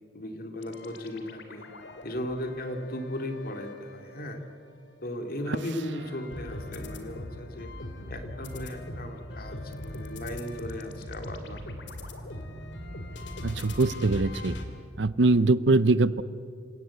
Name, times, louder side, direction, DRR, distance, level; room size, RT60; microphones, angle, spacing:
voice 1, 0.1-1.7 2.0-4.4 5.0-7.7 8.1-11.6, left 1 dB, 55° left, 5 dB, 2.4 m, -36 dB
sound 1, 0.6-4.7 5.1-14.7, left 1 dB, 75° left, 2.6 m, -41 dB
voice 2, 13.4-14.5 15.0-16.2, right 3 dB, 70° right, 17 dB, 0.7 m, -22 dB
28.0 x 17.0 x 8.2 m, 2.3 s
head